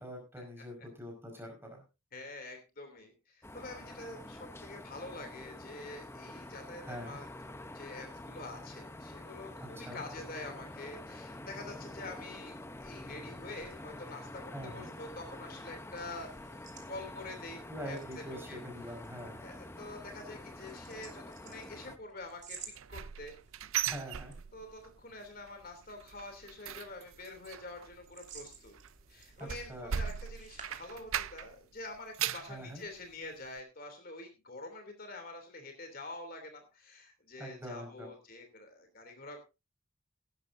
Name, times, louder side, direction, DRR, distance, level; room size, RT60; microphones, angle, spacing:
voice 1, 0.0-1.8 6.8-7.2 9.6-10.0 14.5-14.9 17.7-19.4 23.8-24.3 29.4-29.9 32.5-32.8 37.4-38.1, equal, 10° right, 3 dB, 5.1 m, -44 dB
voice 2, 2.1-16.6 16.9-18.6 19.4-22.6 22.9-23.4 24.5-28.7 29.1-39.4, left 2 dB, 45° left, 6 dB, 3.0 m, -46 dB
sound 1, 3.4-22.0, left 1 dB, 10° left, 0.8 m, -47 dB
sound 2, 12.7-31.5, right 6 dB, 35° right, 2.9 m, -57 dB
sound 3, 22.6-24.9 25.2-25.5 25.8-31.6 31.9-32.6 33.0-33.1 33.6-33.7, right 9 dB, 85° right, 0.6 m, -38 dB
17.5 x 12.0 x 2.7 m, 0.28 s
head